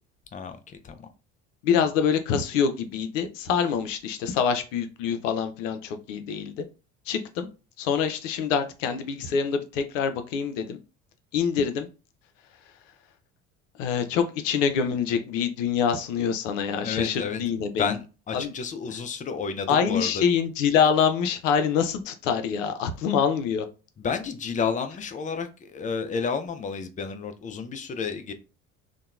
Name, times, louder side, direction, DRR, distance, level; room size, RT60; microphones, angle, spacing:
voice 1, 0.3-1.1 16.8-20.2 24.0-28.3, left 5 dB, 20° left, 0.4 m, -31 dB
voice 2, 1.6-6.6 7.1-7.5 7.8-10.8 11.3-11.9 13.8-17.9 18.3-18.5 19.7-23.7, left 7 dB, 70° left, 0.6 m, -25 dB
2.8 x 2.2 x 2.3 m
hypercardioid pair, 60°, 39 cm